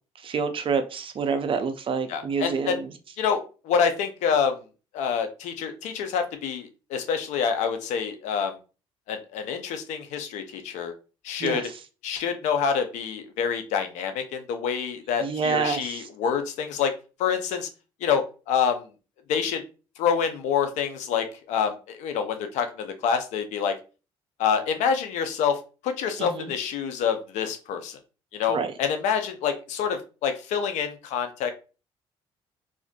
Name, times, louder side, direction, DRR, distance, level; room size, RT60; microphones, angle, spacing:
voice 1, 0.2-2.9 11.4-11.6 15.2-16.1 26.2-26.5 28.5-28.7, right 5 dB, 45° right, 0.5 m, -27 dB
voice 2, 2.1-2.8 3.2-4.6 4.9-8.6 9.1-10.9 11.2-11.7 12.0-16.9 17.2-17.7 18.0-18.9 19.3-19.6 20.0-23.8 24.4-28.0 28.3-31.5, left 7 dB, 75° left, 0.5 m, -27 dB
2.5 x 2.4 x 2.2 m
supercardioid pair, 60°, 12 cm